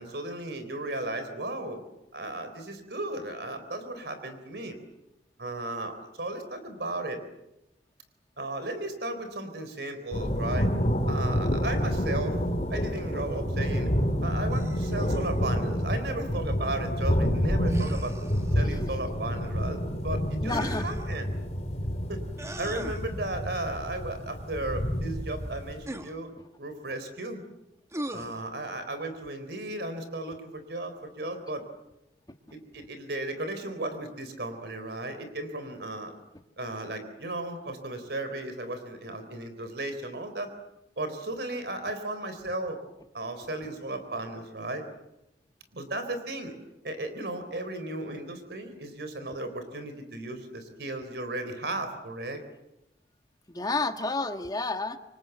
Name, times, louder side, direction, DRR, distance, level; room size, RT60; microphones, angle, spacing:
voice 1, 0.0-1.8 2.1-4.8 5.4-7.2 8.4-10.7 11.1-12.4 12.7-13.9 14.2-18.2 18.5-21.3 22.1-22.2 22.6-26.3 26.6-27.4 28.1-31.7 32.5-36.1 36.6-40.5 41.0-42.8 43.1-44.8 45.7-46.5 46.8-52.4, right 2 dB, 65° right, 9 dB, 3.9 m, -35 dB
sound 1, 10.1-25.9, equal, 40° left, 3.5 m, -29 dB
sound 2, 14.5-15.4 17.6-18.6 20.5-21.1 22.4-23.1 25.8-26.2 27.9-28.4, right 1 dB, 15° right, 1.3 m, -39 dB
voice 2, 20.4-20.9 53.5-55.0, left 3 dB, 20° left, 7 dB, 1.6 m, -30 dB
28.0 x 25.0 x 8.0 m, 0.89 s
head